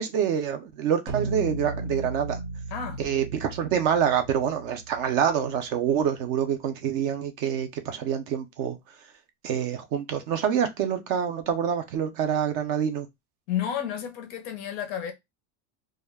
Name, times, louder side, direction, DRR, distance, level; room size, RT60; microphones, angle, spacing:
voice 1, 0.0-2.4 3.0-8.8 9.4-13.1, right 8 dB, 45° right, 0.5 m, -26 dB
sound 1, 1.1-5.7, right 2 dB, 85° right, 1.1 m, -35 dB
voice 2, 2.7-3.0 13.5-15.1, left 9 dB, 35° left, 0.4 m, -31 dB
2.2 x 2.1 x 3.3 m
supercardioid pair, 170°, 37 cm